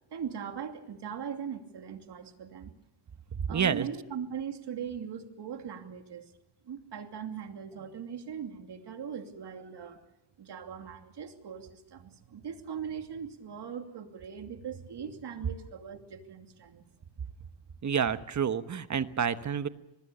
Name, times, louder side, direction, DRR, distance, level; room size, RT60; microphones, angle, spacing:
voice 1, 0.1-2.7 3.5-6.3 6.6-10.1 10.4-16.8, right 7 dB, 60° right, 5 dB, 2.8 m, -40 dB
voice 2, 3.5-3.9 17.8-19.7, right 7 dB, 35° right, 11 dB, 1.2 m, -29 dB
24.5 x 20.5 x 6.9 m, 0.93 s
cardioid pair, 110°, 47 cm